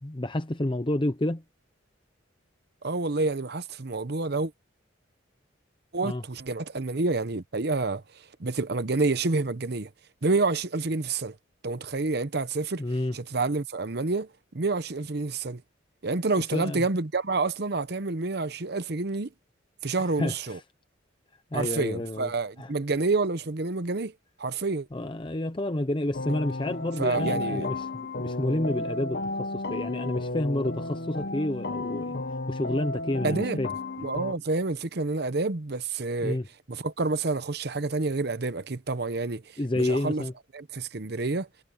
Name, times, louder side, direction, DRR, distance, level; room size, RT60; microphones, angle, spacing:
voice 1, 0.0-1.4 6.0-6.2 12.8-13.1 16.5-16.8 20.0-20.6 21.5-22.3 22.6-22.7 24.9-32.2 32.5-33.7 36.2-36.5 39.6-40.3, left 1 dB, 25° left, 0.7 m, -29 dB
voice 2, 2.8-4.5 5.9-9.9 10.2-11.4 11.6-12.8 13.1-15.6 16.0-19.3 19.8-20.6 21.5-24.1 24.4-24.9 27.0-27.7 33.2-33.6 34.0-36.4 36.7-40.2 40.5-41.5, right 3 dB, 55° right, 0.9 m, -28 dB
sound 1, 26.1-34.3, left 2 dB, 55° left, 0.9 m, -33 dB
head